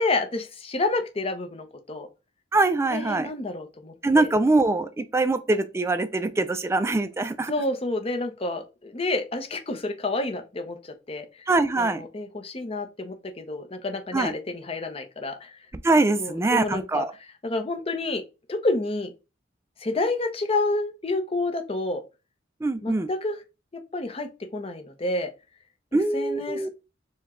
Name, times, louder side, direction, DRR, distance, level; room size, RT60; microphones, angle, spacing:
voice 1, 0.0-2.1 2.9-4.3 7.5-11.5 11.8-15.5 16.2-17.0 17.4-18.2 18.5-19.1 19.8-22.0 22.8-23.4 23.9-25.3 25.9-26.7, left 2 dB, 30° left, 0.6 m, -29 dB
voice 2, 2.5-3.3 4.0-7.5 11.5-12.0 14.1-14.3 15.8-17.1 22.6-23.1 25.9-26.7, right 2 dB, 15° right, 0.3 m, -23 dB
4.6 x 2.2 x 3.6 m
head